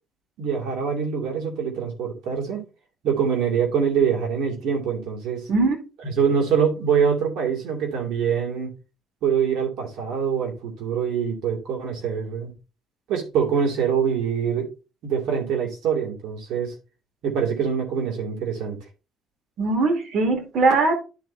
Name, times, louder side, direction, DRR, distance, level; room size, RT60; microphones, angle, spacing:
voice 1, 0.4-2.6 3.0-5.5 6.0-8.7 9.2-12.5 13.1-14.7 15.0-16.7 17.2-18.8, right 7 dB, 75° right, 2.2 m, -24 dB
voice 2, 19.6-20.9, right 3 dB, 55° right, 2.3 m, -20 dB
12.5 x 4.2 x 2.7 m
cardioid pair, 115°, 0 cm